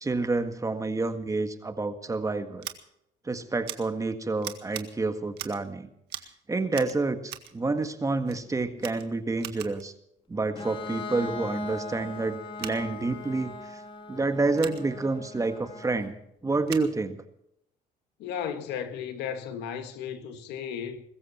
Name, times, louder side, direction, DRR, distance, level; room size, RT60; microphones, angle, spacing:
voice 1, 0.0-2.7 3.3-5.9 6.5-9.9 10.3-13.5 14.1-16.2 16.4-17.2, right 3 dB, 20° right, 1.7 m, -28 dB
Scissors, 2.6-2.8 3.7-3.8 4.4-4.9 5.3-5.7 6.1-6.3 6.7-7.5 8.3-8.4 8.8-9.9 12.5-12.8 14.6-14.8 16.7-16.9, right 13 dB, 80° right, 1.8 m, -40 dB
Bowed string instrument, 10.5-16.1, left 3 dB, 30° left, 2.2 m, -40 dB
voice 2, 18.2-21.0, left 8 dB, 90° left, 2.0 m, -35 dB
22.0 x 14.5 x 4.4 m
cardioid pair, 110°, 17 cm